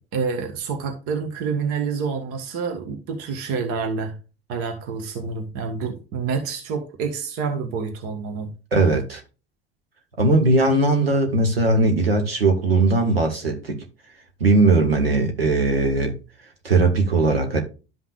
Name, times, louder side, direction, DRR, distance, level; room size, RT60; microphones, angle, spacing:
voice 1, 0.1-4.1 4.5-8.5, right 5 dB, 50° right, 1.7 m, -28 dB
voice 2, 8.7-9.2 10.2-13.8 14.4-16.1 16.6-17.6, right 2 dB, 80° right, 2.0 m, -19 dB
12.0 x 5.7 x 2.5 m
figure-of-eight pair, 70°, 29 cm